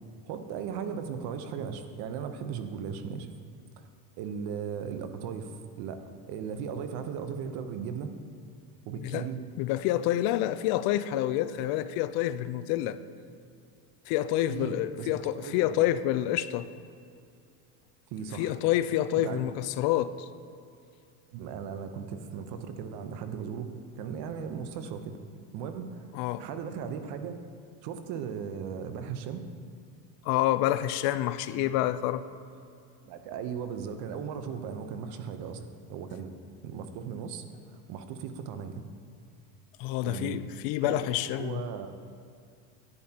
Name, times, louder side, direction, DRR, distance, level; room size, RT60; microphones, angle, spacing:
voice 1, 0.2-3.3 3.8-3.9 4.2-6.0 6.3-8.1 8.9-9.4 14.5-15.1 15.3-15.8 18.1-18.5 19.2-19.4 21.3-25.2 25.5-26.1 26.4-27.4 27.8-29.5 31.5-31.6 33.1-36.3 36.6-38.8 40.0-40.4 40.8-41.9, right 7 dB, 55° right, 8 dB, 0.9 m, -37 dB
voice 2, 9.0-9.3 9.6-13.0 14.1-16.7 18.3-20.3 26.1-26.5 30.2-32.2 39.8-41.6, left 13 dB, 55° left, 13 dB, 0.5 m, -28 dB
10.5 x 9.4 x 2.9 m, 2.5 s
supercardioid pair, 120°, 45 cm